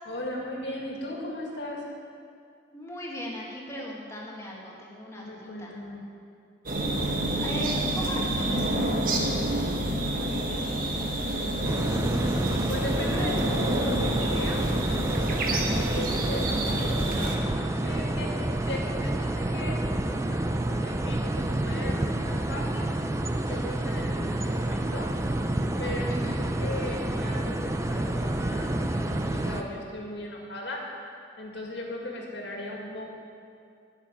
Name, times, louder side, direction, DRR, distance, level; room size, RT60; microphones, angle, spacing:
voice 1, 0.1-1.9 5.1-6.0 11.8-14.7 15.3-18.3 18.6-22.9 23.4-25.1 25.8-30.8 31.4-33.1, left 1 dB, 65° left, -1 dB, 2.0 m, -37 dB
voice 2, 2.7-5.7 6.8-11.1 15.6-16.0 26.1-26.4, left 1 dB, 15° left, -3 dB, 1.8 m, -39 dB
sound 1, 6.7-17.4, right 1 dB, 50° right, 1.2 m, -28 dB
sound 2, 11.6-29.6, right 1 dB, 15° right, 0.4 m, -29 dB
9.0 x 7.4 x 9.0 m, 2.4 s
head